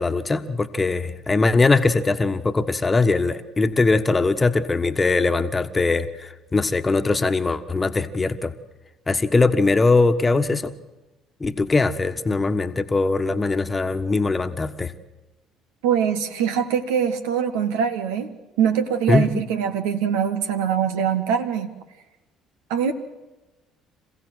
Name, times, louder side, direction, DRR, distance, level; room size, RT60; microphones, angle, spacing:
voice 1, 0.0-8.5 9.1-10.7 11.4-14.9 19.1-19.5, left 3 dB, 25° left, 9 dB, 1.4 m, -21 dB
voice 2, 15.8-18.3 18.6-21.7 22.7-22.9, right 8 dB, 75° right, 8 dB, 1.5 m, -23 dB
27.0 x 16.0 x 8.0 m, 1.1 s
hypercardioid pair, 55°, 0 cm